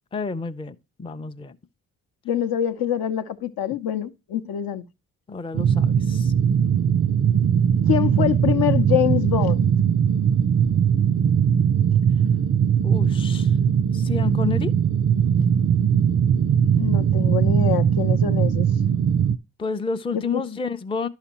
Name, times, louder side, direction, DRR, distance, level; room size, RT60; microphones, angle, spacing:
voice 1, 0.1-1.6 5.3-6.3 12.8-13.5 13.9-14.7 19.6-21.1, left 4 dB, 15° left, 0.5 m, -30 dB
voice 2, 2.2-4.8 7.9-9.6 16.8-18.7 20.1-20.4, left 11 dB, 60° left, 0.7 m, -25 dB
sound 1, 5.5-19.4, right 8 dB, 35° right, 0.5 m, -20 dB
11.0 x 5.8 x 2.9 m
supercardioid pair, 50°, 40 cm